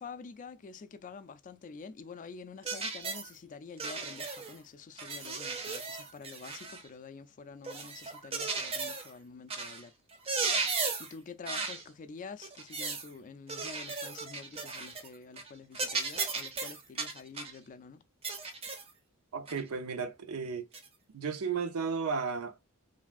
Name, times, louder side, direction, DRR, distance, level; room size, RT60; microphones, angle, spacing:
voice 1, 0.0-9.9 11.0-18.0, left 5 dB, 35° left, 0.3 m, -47 dB
sound 1, 2.6-3.3 3.8-4.6 5.0-6.9 7.6-9.1 9.5-9.8 10.1-11.1 11.4-11.8 12.4-13.1 13.5-15.1 15.4-15.5 15.7-17.6 18.2-18.9 19.5-19.6 20.7-20.9, right 4 dB, 25° right, 0.5 m, -36 dB
voice 2, 19.3-20.7 21.1-22.7, right 5 dB, 80° right, 0.5 m, -34 dB
3.3 x 2.3 x 2.4 m
head